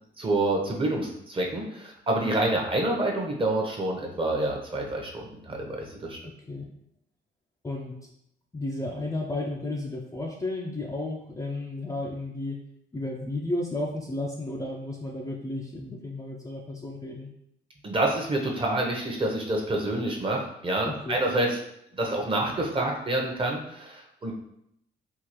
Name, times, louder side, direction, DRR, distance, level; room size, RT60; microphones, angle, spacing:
voice 1, 0.2-6.2 17.8-21.6 22.0-24.3, right 2 dB, 25° right, 0 dB, 0.8 m, -27 dB
voice 2, 6.2-6.7 7.6-8.0 8.5-12.6 12.9-17.3 20.9-21.2, left 2 dB, 15° left, -1 dB, 0.4 m, -33 dB
3.7 x 2.4 x 2.9 m, 0.75 s
cardioid pair, 90°, 20 cm